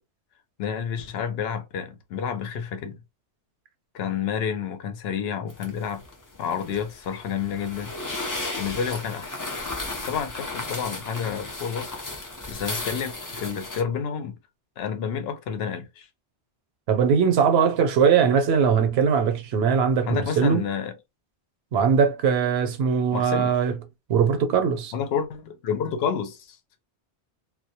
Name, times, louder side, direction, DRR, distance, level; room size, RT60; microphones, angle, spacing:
voice 1, 0.6-3.0 3.9-6.0 6.4-7.9 8.6-9.4 10.1-12.0 12.5-14.3 14.8-16.1 20.1-20.9 23.1-23.5 24.9-26.6, left 7 dB, 70° left, 0.8 m, -29 dB
sound 1, 5.5-13.8, left 2 dB, 30° left, 0.3 m, -34 dB
voice 2, 16.9-20.6 21.7-23.8 24.1-24.9, right 6 dB, 70° right, 0.8 m, -21 dB
2.2 x 2.1 x 2.7 m
omnidirectional pair, 1.1 m